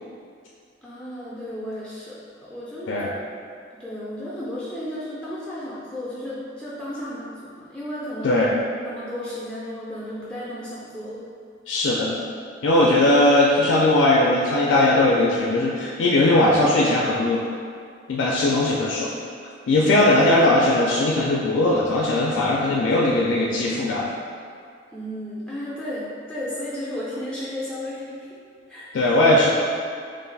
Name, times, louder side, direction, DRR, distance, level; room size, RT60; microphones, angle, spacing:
voice 1, 0.8-3.2 3.7-8.4 8.8-11.2 24.9-28.4 28.7-28.9, left 1 dB, 5° left, -8 dB, 0.4 m, -34 dB
voice 2, 8.2-8.5 11.7-12.2 12.6-17.5 18.1-19.1 19.7-24.1 28.9-29.5, left 1 dB, 80° left, -4 dB, 0.3 m, -19 dB
2.4 x 2.3 x 3.8 m, 2.2 s
head